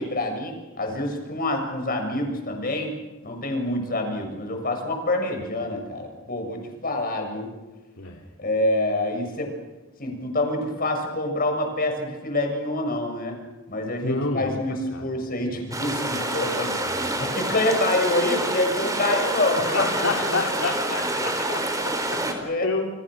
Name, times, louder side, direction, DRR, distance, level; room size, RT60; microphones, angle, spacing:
voice 1, 0.0-2.9 3.2-7.5 8.4-9.5 10.0-13.4 13.7-19.8 22.1-22.7, left 2 dB, 45° left, 4 dB, 6.9 m, -26 dB
voice 2, 14.0-14.6 14.9-15.0 16.9-17.0 19.6-22.9, left 3 dB, 70° left, 0 dB, 2.8 m, -29 dB
sound 1, 15.7-22.3, right 1 dB, 15° right, 4.3 m, -27 dB
30.0 x 29.0 x 6.3 m, 1.2 s
head